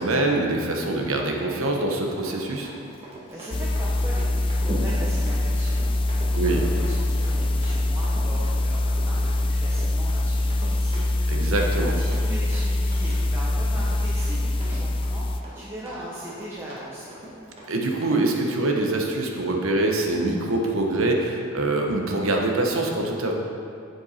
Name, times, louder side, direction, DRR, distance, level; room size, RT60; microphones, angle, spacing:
voice 1, 0.0-2.7 6.3-6.6 11.3-11.9 17.7-23.3, right 2 dB, 80° right, 1 dB, 1.1 m, -24 dB
Run, 2.2-18.2, right 1 dB, 30° right, 1.6 m, -41 dB
voice 2, 3.3-17.1, right 1 dB, 10° right, -8 dB, 1.0 m, -39 dB
sound 1, 3.5-15.4, left 2 dB, 25° left, 0.3 m, -24 dB
7.8 x 7.7 x 4.3 m, 2.5 s
head